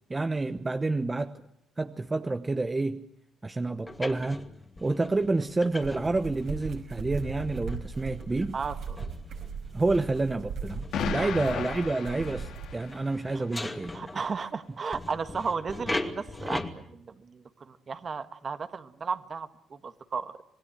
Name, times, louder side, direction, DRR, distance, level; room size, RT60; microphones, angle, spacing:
voice 1, 0.1-1.3 1.8-3.1 3.4-4.4 4.8-8.6 9.7-13.9, right 2 dB, 20° right, 9 dB, 1.0 m, -29 dB
sound 1, 3.9-14.5 14.9-16.7, left 2 dB, 20° left, 2.5 m, -40 dB
sound 2, 5.8-12.8, right 5 dB, 70° right, 5.5 m, -38 dB
voice 2, 8.5-9.1 11.2-11.3 13.3-13.4 13.9-20.3, right 5 dB, 40° right, 10 dB, 1.7 m, -35 dB
Explosion, 10.9-13.1, left 7 dB, 80° left, 2.1 m, -34 dB
27.0 x 19.5 x 9.2 m, 0.72 s
cardioid pair, 90°, 0 cm